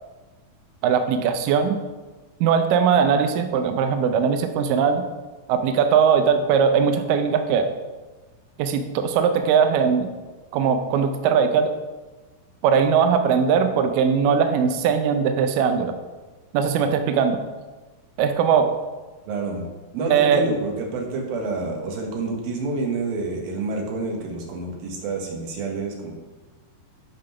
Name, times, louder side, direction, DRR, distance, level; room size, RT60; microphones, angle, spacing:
voice 1, 0.8-1.8 2.4-5.0 5.5-7.7 8.6-10.1 10.5-11.7 12.6-15.9 16.5-17.4 18.2-18.7 20.1-20.5, right 6 dB, 85° right, 7 dB, 1.9 m, -20 dB
voice 2, 19.3-19.7 19.9-26.1, right 3 dB, 70° right, 1 dB, 3.0 m, -28 dB
9.0 x 5.2 x 5.7 m, 1.2 s
omnidirectional pair, 4.7 m